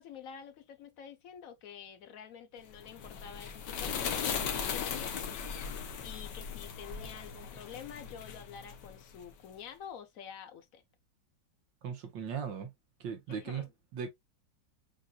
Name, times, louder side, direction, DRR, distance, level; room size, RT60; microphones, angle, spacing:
voice 1, 0.0-5.5 6.0-10.8 13.3-13.7, left 8 dB, 60° left, 1.0 m, -48 dB
sound 1, 2.7-9.3, left 7 dB, 75° left, 1.5 m, -38 dB
voice 2, 11.8-12.7 13.0-13.7 13.9-14.1, right 7 dB, 85° right, 1.7 m, -37 dB
7.4 x 2.6 x 2.3 m
omnidirectional pair, 2.0 m